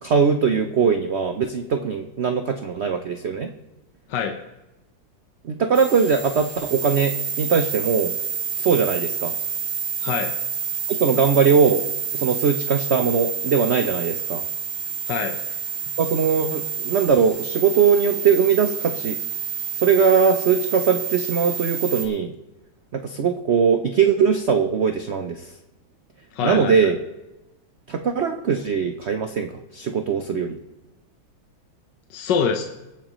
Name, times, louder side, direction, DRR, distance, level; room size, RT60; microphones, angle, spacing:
voice 1, 0.0-3.5 5.4-8.1 8.6-9.3 10.9-11.9 12.1-14.4 16.0-19.2 19.8-22.3 22.9-25.5 26.4-27.0 27.9-30.6, right 6 dB, 70° right, 7 dB, 0.6 m, -20 dB
sound 1, 5.7-22.0, right 7 dB, 15° right, 1.4 m, -29 dB
voice 2, 10.0-10.3 15.1-15.4 26.3-26.9 32.1-32.6, left 6 dB, 70° left, 4 dB, 1.5 m, -25 dB
22.5 x 8.9 x 3.0 m, 0.99 s
omnidirectional pair, 2.1 m